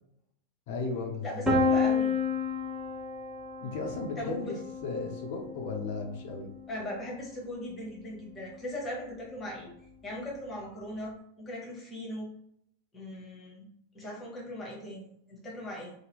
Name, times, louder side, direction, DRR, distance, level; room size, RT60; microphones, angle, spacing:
voice 1, 0.7-1.7 3.6-6.5, left 4 dB, 50° left, 2 dB, 0.6 m, -35 dB
voice 2, 1.2-2.1 4.2-4.6 6.7-9.7 10.0-12.3 12.9-13.7 13.9-15.9, left 1 dB, 20° left, -2 dB, 1.0 m, -39 dB
Piano, 1.5-7.2, left 4 dB, 5° right, 0.8 m, -31 dB
2.8 x 2.1 x 3.4 m, 0.72 s
figure-of-eight pair, 90°, 0 cm